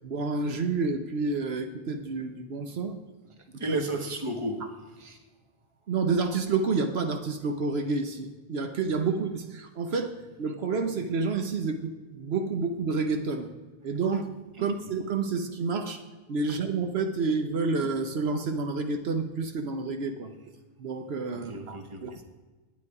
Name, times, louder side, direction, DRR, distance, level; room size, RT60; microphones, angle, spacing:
voice 1, 0.0-3.0 3.7-3.8 5.9-13.5 13.8-16.0 16.3-20.3 20.8-22.3, right 4 dB, 75° right, 6 dB, 1.1 m, -29 dB
voice 2, 3.4-5.2 14.6-14.7 21.3-22.2, right 2 dB, 30° right, 5 dB, 1.2 m, -34 dB
9.3 x 9.3 x 4.8 m, 1.3 s
omnidirectional pair, 1.1 m